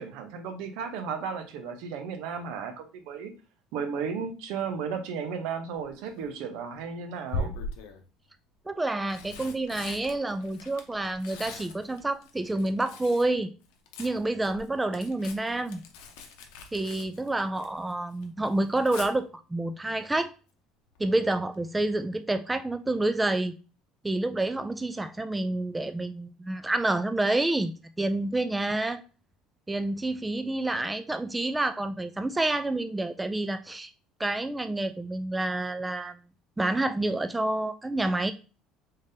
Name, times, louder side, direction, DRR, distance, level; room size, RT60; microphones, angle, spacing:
voice 1, 0.0-3.3 3.7-7.5, right 6 dB, 75° right, 0.8 m, -34 dB
Tearing, 5.8-6.3 7.3-8.0 8.8-13.3 13.6-17.9 18.2-19.1 20.9-21.2 21.5-21.6, left 2 dB, 85° left, 0.7 m, -41 dB
voice 2, 8.7-13.5 14.0-15.8 16.7-20.3 21.0-23.5 24.0-29.0 29.7-33.9 34.2-36.2 36.6-38.3, right 2 dB, 10° right, 0.3 m, -28 dB
3.6 x 3.6 x 2.6 m
supercardioid pair, 110°, 0 cm